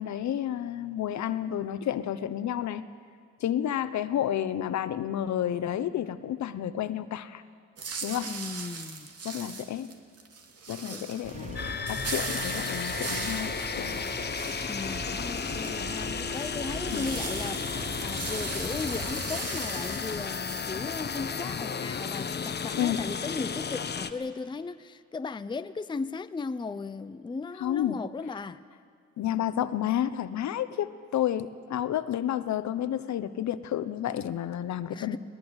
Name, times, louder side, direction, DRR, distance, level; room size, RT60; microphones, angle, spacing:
voice 1, 0.0-2.8 3.4-7.4 8.0-8.3 9.2-9.9 10.7-14.1 16.9-17.1 22.8-23.0 27.6-28.0 29.2-35.2, left 11 dB, 65° left, 1.0 m, -30 dB
sound 1, 7.8-20.6, right 5 dB, 55° right, 2.5 m, -40 dB
voice 2, 8.2-9.1 10.9-11.1 14.7-28.6 34.9-35.2, left 4 dB, 15° left, 0.6 m, -37 dB
sound 2, 11.2-19.2, right 2 dB, 25° right, 3.0 m, -41 dB
sound 3, 11.6-24.1, left 6 dB, 35° left, 1.0 m, -34 dB
21.5 x 19.5 x 8.1 m
cardioid pair, 90°, 30 cm